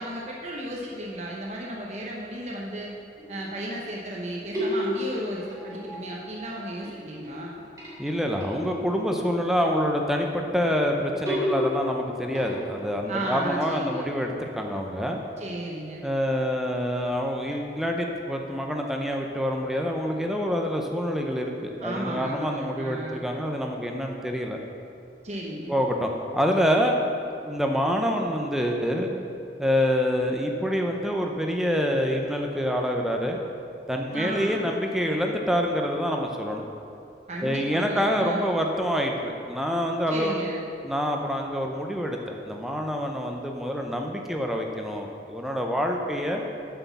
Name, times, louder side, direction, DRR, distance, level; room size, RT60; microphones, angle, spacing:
voice 1, 0.0-2.9 3.3-7.6 13.1-14.1 15.4-16.0 21.8-23.2 25.2-25.8 34.1-34.6 37.3-38.4 40.1-40.6, right 1 dB, 40° right, -3 dB, 0.9 m, -34 dB
sound 1, 3.2-4.1 4.5-6.5 6.8-9.8 11.3-12.9, left 1 dB, 20° right, 2.3 m, -33 dB
voice 2, 8.0-15.2 16.0-24.6 25.7-27.0 27.4-29.2 29.6-33.4 33.9-36.7 37.4-40.5 40.8-46.4, equal, ahead, 2 dB, 0.6 m, -26 dB
7.7 x 6.2 x 6.9 m, 2.7 s
head